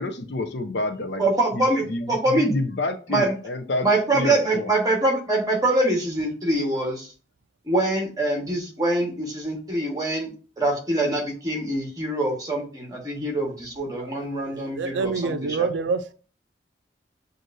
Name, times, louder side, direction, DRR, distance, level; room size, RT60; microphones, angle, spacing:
voice 1, 0.0-1.2 1.5-3.9 4.1-4.7, left 2 dB, 65° left, 0.6 m, -29 dB
voice 2, 1.2-2.5 3.1-3.3 3.8-7.1 7.7-10.3 10.6-15.7, right 2 dB, 20° right, 1.3 m, -24 dB
voice 3, 14.0-16.1, right 4 dB, 80° right, 0.4 m, -28 dB
7.6 x 2.6 x 2.6 m
head